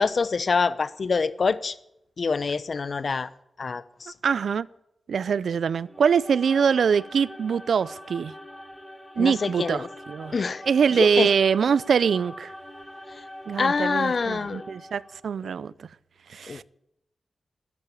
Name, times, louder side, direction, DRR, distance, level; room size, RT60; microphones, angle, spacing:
voice 1, 0.0-1.7 2.2-3.3 3.6-4.1 9.2-9.9 10.3-10.6 11.0-11.3 13.6-14.6 16.5-16.6, left 4 dB, 55° left, 0.8 m, -25 dB
voice 2, 4.2-4.7 5.1-8.3 9.2-10.4 10.6-12.5 13.5-15.9 16.3-16.6, right 6 dB, 90° right, 0.5 m, -23 dB
sound 1, 5.8-15.3, left 1 dB, 10° left, 2.4 m, -43 dB
13.5 x 10.5 x 8.6 m
wide cardioid pair, 90°, 0 cm